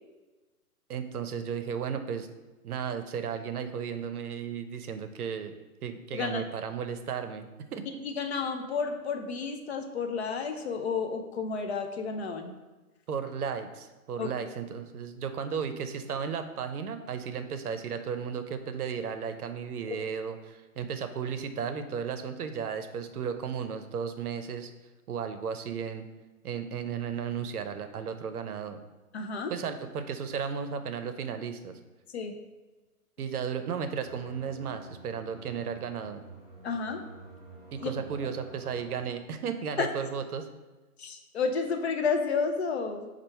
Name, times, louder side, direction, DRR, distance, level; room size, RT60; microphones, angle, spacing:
voice 1, 0.9-2.3 2.6-5.5 5.8-7.8 13.1-24.7 25.1-26.1 26.4-28.8 29.5-31.8 33.2-36.2 37.7-40.5, right 7 dB, 75° right, 8 dB, 0.6 m, -34 dB
voice 2, 8.0-12.5 14.2-14.3 19.9-20.0 29.1-29.6 32.1-32.4 36.6-37.0 37.8-37.9 39.8-39.9 41.0-43.1, left 5 dB, 45° left, 5 dB, 0.5 m, -31 dB
sound 1, 34.0-39.0, right 2 dB, 20° right, 1.1 m, -49 dB
4.2 x 2.5 x 4.5 m, 1.2 s
hypercardioid pair, 140°, 45 cm